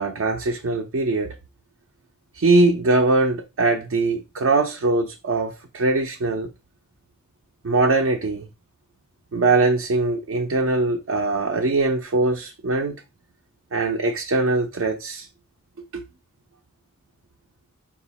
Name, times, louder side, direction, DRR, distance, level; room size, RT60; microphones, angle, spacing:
voice 1, 0.0-1.3 2.3-6.5 7.6-8.5 9.3-13.0 13.7-15.3 15.9-16.0, right 3 dB, 70° right, 0.5 m, -21 dB
4.6 x 2.4 x 4.0 m
head